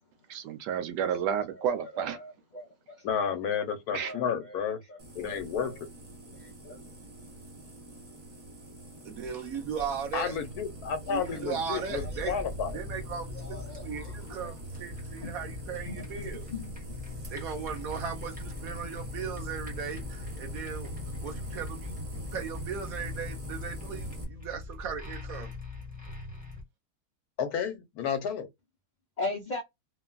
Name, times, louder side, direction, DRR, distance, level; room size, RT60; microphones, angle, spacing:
voice 1, 0.3-2.2 3.9-4.1, right 8 dB, 80° right, 1.2 m, -31 dB
voice 2, 2.1-3.1 4.0-4.6 4.9-5.7 6.3-6.8 11.2-11.4 11.7-12.4 13.3-14.5 15.2-15.4 15.8-16.7 29.2-29.6, left 2 dB, 50° left, 0.5 m, -40 dB
voice 3, 3.0-4.8 5.1-5.9 10.1-12.8 27.4-28.5, left 7 dB, 65° left, 1.2 m, -31 dB
sound 1, 5.0-24.2, equal, 35° right, 0.5 m, -43 dB
voice 4, 9.0-10.4 11.0-12.3 12.7-16.5 17.3-20.9 21.2-25.5, right 7 dB, 60° right, 1.3 m, -37 dB
sound 2, 11.9-26.6, left 3 dB, 5° right, 1.0 m, -42 dB
3.5 x 2.3 x 2.3 m
omnidirectional pair, 1.8 m